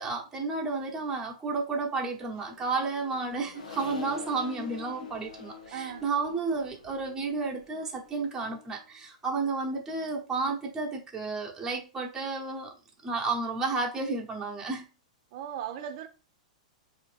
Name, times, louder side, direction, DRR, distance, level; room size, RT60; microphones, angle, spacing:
voice 1, 0.0-12.7 13.0-14.9, right 3 dB, 15° right, 1.1 m, -32 dB
Accelerating revving vroom, 2.1-8.8, left 4 dB, 80° left, 0.8 m, -45 dB
voice 2, 5.7-6.0 15.3-16.1, right 9 dB, 50° right, 0.7 m, -37 dB
4.3 x 2.8 x 3.3 m
hypercardioid pair, 120°, 4 cm